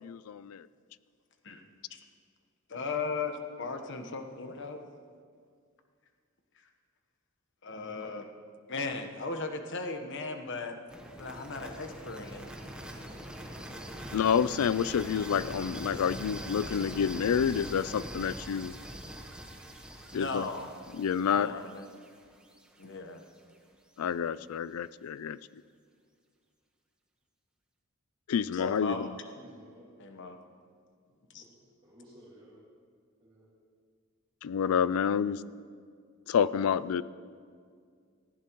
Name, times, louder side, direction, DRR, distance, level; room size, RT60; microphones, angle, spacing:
voice 1, 0.0-0.6 14.1-18.7 20.1-20.5 21.0-21.5 24.0-25.4 28.3-29.1 34.4-35.4 36.3-37.0, left 7 dB, 85° left, 18 dB, 0.4 m, -28 dB
voice 2, 2.7-4.8 6.5-6.6 7.6-8.3 8.7-10.8 11.2-12.5 20.1-20.7 21.3-21.9 22.8-23.3 28.5-29.1 30.0-30.4 31.3-31.4, left 3 dB, 60° left, 5 dB, 1.1 m, -37 dB
sound 1, 10.9-22.8, equal, 5° right, 1.1 m, -43 dB
voice 3, 29.4-29.9 31.4-31.6 31.8-32.6 33.2-33.5 36.6-36.9, equal, 25° right, -7 dB, 2.1 m, -55 dB
19.0 x 15.0 x 3.1 m, 2.1 s
head